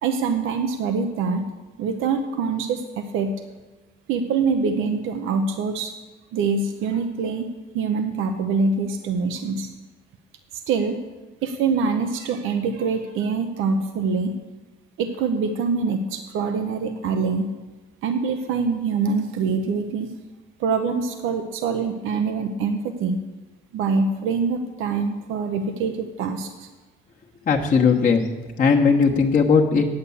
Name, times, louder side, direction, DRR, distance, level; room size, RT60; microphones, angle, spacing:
voice 1, 0.0-1.4 1.8-3.3 4.1-5.9 6.3-7.5 7.7-9.7 10.7-11.0 11.4-14.3 15.0-17.5 18.0-20.1 20.6-23.2 23.7-26.7, right 5 dB, 90° right, 6 dB, 0.7 m, -24 dB
voice 2, 27.5-28.2 28.6-29.9, left 5 dB, 45° left, -2 dB, 1.2 m, -18 dB
8.9 x 8.2 x 7.1 m, 1.2 s
cardioid pair, 90°, 20 cm